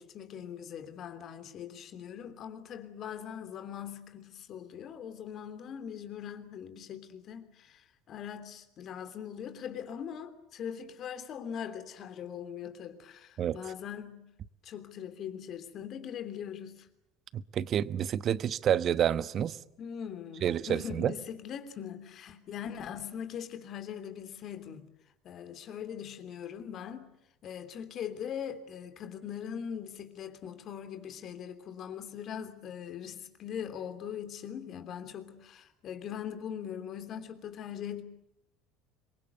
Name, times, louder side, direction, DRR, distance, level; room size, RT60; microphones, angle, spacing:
voice 1, 0.0-14.3 14.6-16.9 19.8-24.9 25.2-27.1 27.4-38.0, left 8 dB, 50° left, 3.2 m, -41 dB
voice 2, 17.3-19.6 20.4-21.1, right 9 dB, 45° right, 1.0 m, -29 dB
26.5 x 23.5 x 8.1 m
hypercardioid pair, 70°, 0 cm